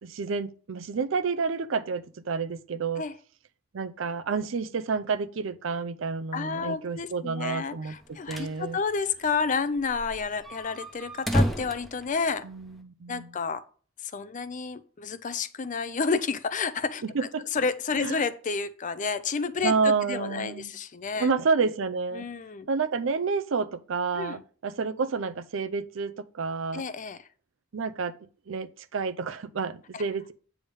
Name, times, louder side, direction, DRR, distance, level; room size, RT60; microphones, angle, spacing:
voice 1, 0.0-3.0 3.7-8.8 12.4-13.3 17.1-17.4 18.0-18.2 19.6-20.7 21.2-22.3 22.7-26.8 27.7-28.1 28.5-30.3, right 4 dB, 70° right, 0.5 m, -29 dB
voice 2, 6.3-12.4 13.1-13.6 14.0-17.0 17.5-21.3 22.1-22.7 24.1-24.4 26.7-27.2 29.9-30.0, left 5 dB, 40° left, 0.5 m, -30 dB
sound 1, 7.9-8.6 8.9-9.0 9.2-9.3 9.8-12.8, equal, ahead, 0.9 m, -30 dB
8.8 x 3.5 x 5.4 m
head